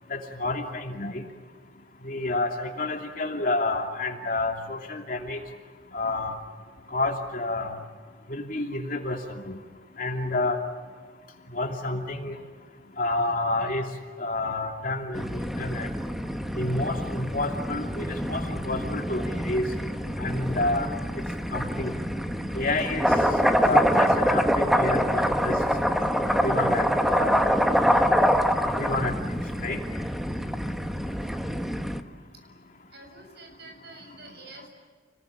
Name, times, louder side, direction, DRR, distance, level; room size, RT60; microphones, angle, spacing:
voice 1, 0.1-1.2 2.0-5.4 5.9-6.3 6.9-7.8 8.3-9.2 9.4-9.6 10.0-10.6 11.5-12.4 13.0-13.8 14.2-15.9 16.6-19.6 20.2-20.9 21.5-21.9 22.5-23.0 23.5-25.6 26.3-27.4 28.0-28.3 28.8-29.8, left 2 dB, 45° left, 2 dB, 2.8 m, -29 dB
sound 1, 15.1-32.0, equal, ahead, 1.2 m, -25 dB
voice 2, 32.9-34.7, right 2 dB, 60° right, 4 dB, 7.6 m, -47 dB
29.5 x 21.0 x 8.6 m, 1.5 s
head